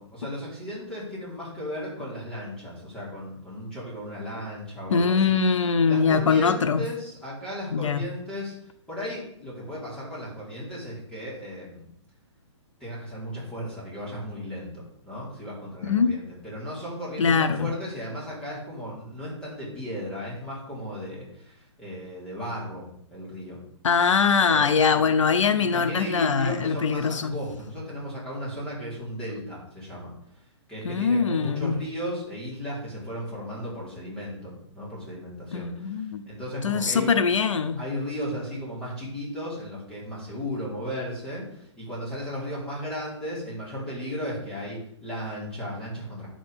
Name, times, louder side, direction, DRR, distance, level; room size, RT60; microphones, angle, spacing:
voice 1, 0.0-5.4 5.9-8.5 8.9-11.9 12.8-14.7 15.0-23.6 24.5-25.1 25.6-30.1 30.7-37.1 37.8-46.3, equal, 5° left, 4.7 m, -35 dB
voice 2, 4.9-6.8 7.7-8.0 15.8-16.2 17.2-17.7 23.8-27.3 30.8-31.8 35.5-36.2 36.6-37.8, left 5 dB, 90° left, 0.9 m, -22 dB
9.6 x 6.4 x 6.9 m
hypercardioid pair, 160°, 15 cm